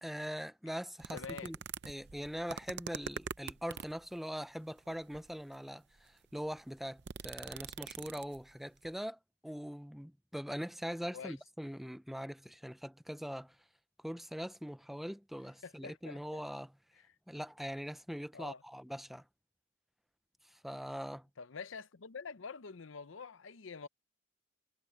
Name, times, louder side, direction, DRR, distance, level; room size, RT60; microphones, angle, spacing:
voice 1, 0.0-1.6 1.8-13.6 14.0-16.7 17.3-19.2 20.4-21.3, equal, ahead, 0.5 m, -42 dB
sound 1, 1.0-4.0 4.9-5.4 6.0-6.1 6.3-8.5 8.8-8.9, right 6 dB, 55° right, 0.6 m, -44 dB
voice 2, 1.1-1.5 11.1-11.4 15.6-16.4 18.3-18.6 21.4-23.9, left 5 dB, 70° left, 0.7 m, -46 dB
head